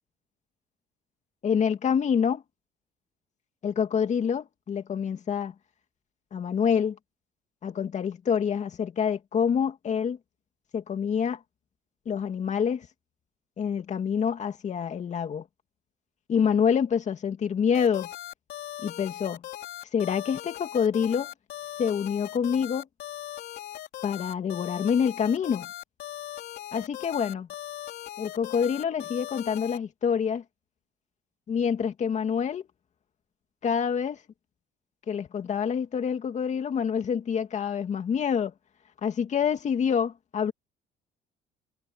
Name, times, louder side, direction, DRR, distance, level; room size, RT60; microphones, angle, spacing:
voice 1, 1.4-2.4 3.6-5.5 6.3-7.0 7.6-10.2 10.7-11.4 12.1-12.9 13.6-15.4 16.3-18.1 18.8-19.4 19.9-21.3 21.8-22.9 24.0-25.7 26.7-27.5 28.2-30.4 31.5-32.6 33.6-34.2 35.1-38.5 39.0-40.5, left 7 dB, 45° left, 2.5 m, -27 dB
sound 1, 17.7-29.8, left 13 dB, 75° left, 4.4 m, -39 dB
cardioid pair, 110°, 17 cm